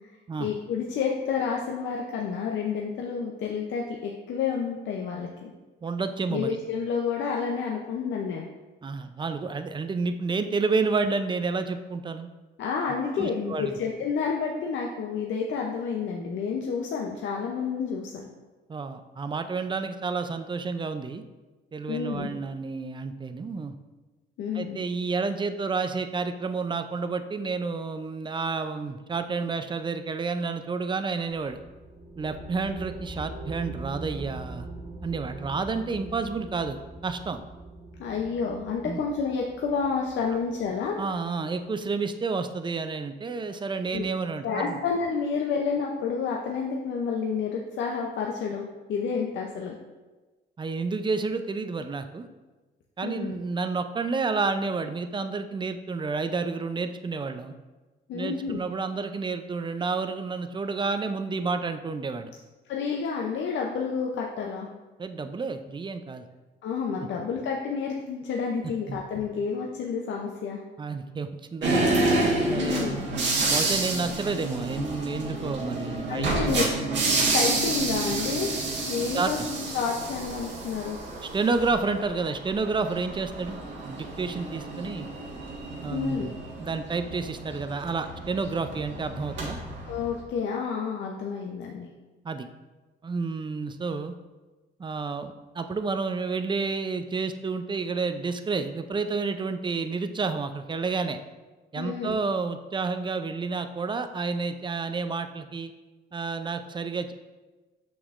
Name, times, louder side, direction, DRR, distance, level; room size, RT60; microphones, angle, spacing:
voice 1, 0.1-5.5 6.3-8.5 12.6-18.3 21.9-22.3 24.4-24.8 38.0-41.0 43.9-44.0 44.4-49.8 53.0-53.4 58.1-58.6 62.7-64.7 66.6-70.6 72.5-73.0 76.1-76.7 77.3-78.5 78.8-81.0 85.9-86.3 89.9-91.9 101.8-102.2, left 6 dB, 70° left, -1 dB, 0.6 m, -30 dB
voice 2, 5.8-6.6 8.8-12.3 13.2-13.8 18.7-21.2 21.7-23.7 24.5-31.6 32.2-34.7 35.0-37.4 38.8-39.0 41.0-44.8 50.6-52.3 53.0-57.5 58.1-62.3 65.0-66.3 67.0-67.1 68.9-69.0 70.8-71.9 72.5-73.0 73.5-76.7 79.1-79.5 81.3-83.6 83.8-85.1 85.8-86.3 86.6-89.6 92.2-92.5 93.0-94.1 94.8-101.2 101.7-105.7 106.1-107.1, right 4 dB, 25° right, 9 dB, 0.4 m, -30 dB
sound 1, 31.3-41.3, right 2 dB, 45° right, 1.7 m, -42 dB
sound 2, 71.6-90.2, right 2 dB, 65° right, 1.6 m, -29 dB
6.2 x 6.0 x 2.5 m, 1.2 s
cardioid pair, 90°, 20 cm